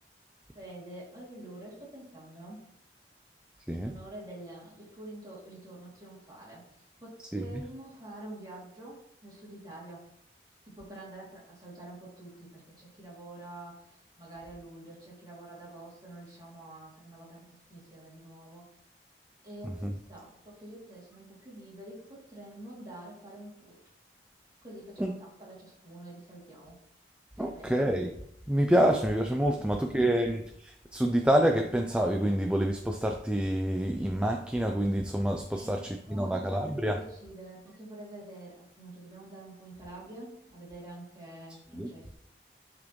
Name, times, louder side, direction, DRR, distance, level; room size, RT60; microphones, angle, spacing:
voice 1, 0.5-2.6 3.7-6.6 7.0-10.0 10.6-18.7 19.4-23.8 24.6-26.8 27.4-27.7 29.6-30.2 35.5-42.1, right 1 dB, 25° right, -6 dB, 2.8 m, -47 dB
voice 2, 27.4-28.1 28.5-37.0 41.8-41.9, equal, 5° right, 4 dB, 0.4 m, -27 dB
10.5 x 4.9 x 3.1 m, 0.74 s
head